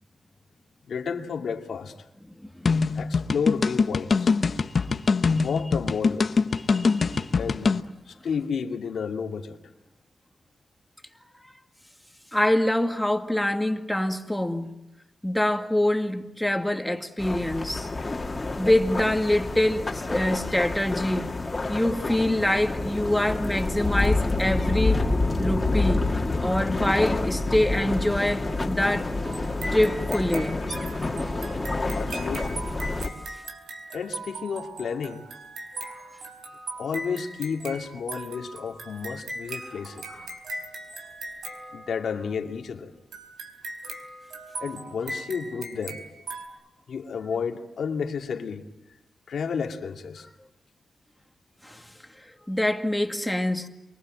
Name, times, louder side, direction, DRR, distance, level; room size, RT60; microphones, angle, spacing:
voice 1, 0.9-2.0 2.9-4.3 5.3-6.3 7.3-7.7 8.1-9.6 31.9-32.6 33.9-35.3 36.8-40.0 41.7-42.9 44.6-46.0 46.9-48.7 49.3-50.3, left 6 dB, 85° left, 2.4 m, -31 dB
sound 1, 2.7-7.8, left 4 dB, 60° left, 1.0 m, -23 dB
voice 2, 6.7-7.4 12.3-14.7 15.2-17.9 18.6-21.3 21.7-25.1 25.4-26.0 26.4-29.1 29.7-30.6 35.8-36.1 40.1-40.2 51.6-51.8 52.5-53.7, left 1 dB, 5° left, 2.0 m, -25 dB
sound 2, 17.2-33.1, left 2 dB, 30° left, 2.4 m, -28 dB
sound 3, 29.2-42.4 43.1-46.5, right 2 dB, 90° right, 3.9 m, -39 dB
29.0 x 24.0 x 7.6 m
cardioid pair, 75°, 0 cm